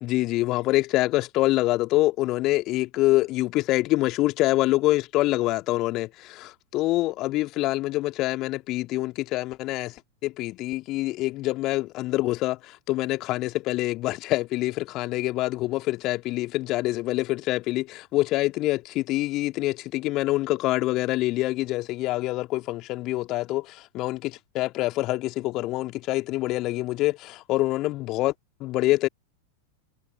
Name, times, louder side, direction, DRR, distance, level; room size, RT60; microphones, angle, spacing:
voice 1, 0.0-9.9 10.2-28.3 28.6-29.1, left 18 dB, 40° left, 2.1 m, -25 dB
figure-of-eight pair, 90°, 0 cm